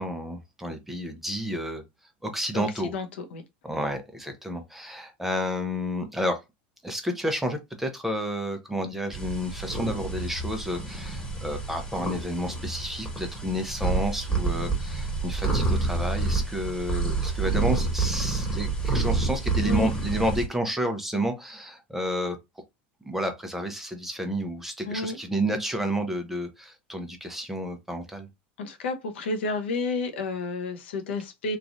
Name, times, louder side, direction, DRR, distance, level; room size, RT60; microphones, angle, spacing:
voice 1, 0.0-1.8 2.2-2.9 3.6-6.4 6.8-22.4 23.0-28.3, equal, 5° right, 0.7 m, -30 dB
voice 2, 2.9-3.4 19.6-19.9 24.9-25.2 28.6-31.6, left 3 dB, 85° left, 0.8 m, -30 dB
sound 1, 9.1-20.5, right 3 dB, 10° left, 1.5 m, -28 dB
3.1 x 2.4 x 2.5 m
supercardioid pair, 115°, 6 cm